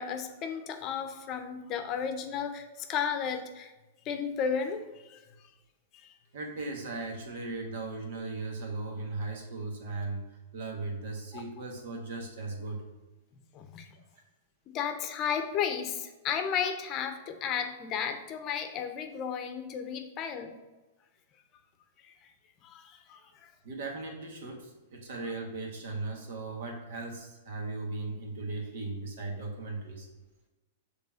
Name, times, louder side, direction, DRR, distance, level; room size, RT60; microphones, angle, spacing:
voice 1, 0.0-3.7 4.0-5.2 5.9-6.1 11.3-11.4 13.5-13.9 14.7-20.6 22.0-22.1 22.6-23.5, left 7 dB, 40° left, 7 dB, 0.7 m, -34 dB
voice 2, 6.3-10.3 10.5-12.8 13.9-14.1 23.6-30.1, right 3 dB, 65° right, 1 dB, 1.5 m, -37 dB
5.3 x 3.4 x 5.6 m, 1.1 s
hypercardioid pair, 115°, 0 cm